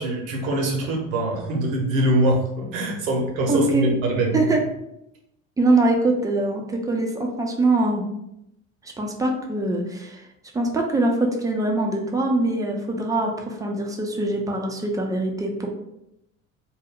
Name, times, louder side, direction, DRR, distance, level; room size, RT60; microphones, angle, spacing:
voice 1, 0.0-4.4, right 1 dB, 75° right, 1 dB, 0.8 m, -23 dB
voice 2, 3.5-3.9 4.3-4.6 5.6-8.0 8.8-10.2 10.5-15.7, right 2 dB, 10° right, 1 dB, 0.3 m, -23 dB
2.4 x 2.1 x 3.5 m, 0.84 s
hypercardioid pair, 65°, 41 cm